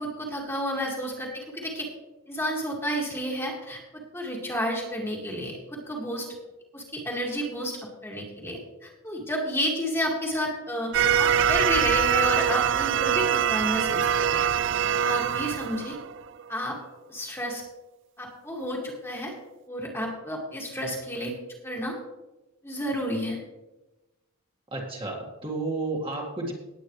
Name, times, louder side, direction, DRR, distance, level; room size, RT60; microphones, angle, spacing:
voice 1, 0.0-1.9 2.3-3.8 4.1-6.3 6.7-14.5 15.0-16.0 16.5-16.8 17.1-17.6 18.2-19.3 19.7-21.3 21.6-21.9 22.6-23.4, equal, 10° left, -1 dB, 2.0 m, -31 dB
sound 1, 10.9-16.4, right 8 dB, 55° right, 0.4 m, -24 dB
voice 2, 24.7-26.5, right 2 dB, 25° right, -1 dB, 1.9 m, -31 dB
18.5 x 8.8 x 3.2 m, 1.1 s
head